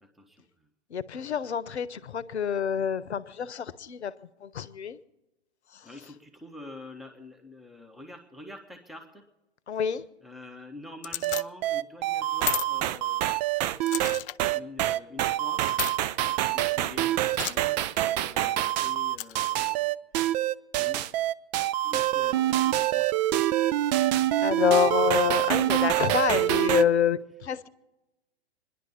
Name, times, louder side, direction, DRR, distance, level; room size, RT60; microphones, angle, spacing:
voice 1, 0.0-0.5 5.8-9.3 9.7-9.8 10.2-13.4 13.8-13.9 14.5-15.7 16.3-20.4 20.8-21.1 21.8-23.1 23.8-24.0, left 2 dB, ahead, 1.2 m, -46 dB
voice 2, 0.9-4.1 4.4-5.0 9.7-10.0 24.4-27.7, left 8 dB, 80° left, 0.8 m, -27 dB
sound 1, 11.0-11.4 12.4-12.7 13.9-14.4 15.7-15.9 17.3-17.6 19.2-19.5, left 14 dB, 55° left, 0.6 m, -32 dB
sound 2, 11.2-26.8, right 14 dB, 40° right, 0.5 m, -26 dB
27.0 x 11.0 x 4.3 m
hypercardioid pair, 110°, 33 cm